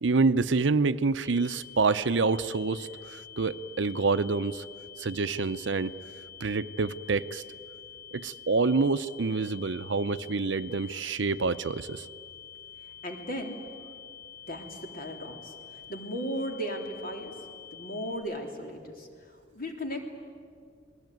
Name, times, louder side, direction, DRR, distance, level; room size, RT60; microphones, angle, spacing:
voice 1, 0.0-4.6 5.0-5.9 6.4-7.4 8.1-12.1, right 4 dB, 80° right, 13 dB, 0.7 m, -27 dB
sound 1, 1.2-18.2, left 9 dB, 85° left, 6.1 m, -47 dB
voice 2, 13.0-13.6 14.5-17.3 17.7-20.0, equal, 50° left, 3 dB, 3.5 m, -36 dB
29.5 x 20.0 x 9.3 m, 2.2 s
head